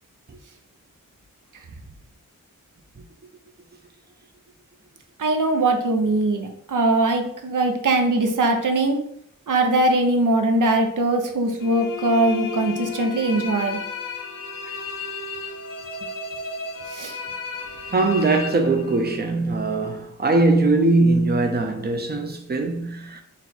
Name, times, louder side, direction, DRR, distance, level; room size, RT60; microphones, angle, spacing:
voice 1, 5.2-9.0 9.5-13.8 16.9-17.2, right 2 dB, 70° right, 0.7 m, -21 dB
sound 1, 11.6-19.3, left 5 dB, 80° left, 0.6 m, -33 dB
voice 2, 17.9-23.2, right 2 dB, 30° right, 0.6 m, -21 dB
4.2 x 2.3 x 4.0 m
wide cardioid pair, 80°, 32 cm